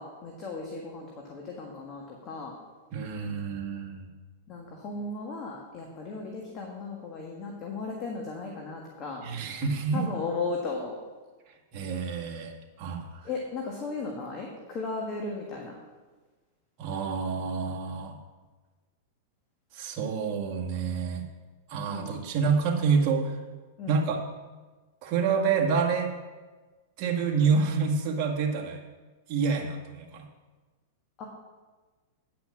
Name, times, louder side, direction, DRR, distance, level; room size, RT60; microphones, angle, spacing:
voice 1, 0.0-2.6 4.5-9.3 9.9-11.0 13.2-15.8 21.9-22.2 23.8-24.0 31.2-31.3, left 3 dB, 30° left, 0 dB, 1.6 m, -36 dB
voice 2, 2.9-4.1 9.2-10.1 11.7-12.5 12.8-13.1 16.8-18.2 19.7-21.3 21.7-23.4 23.9-24.2 25.0-26.1 27.0-28.8 29.3-30.3, right 5 dB, 40° right, 0 dB, 1.9 m, -28 dB
9.7 x 5.9 x 7.2 m, 1.3 s
supercardioid pair, 145°, 0 cm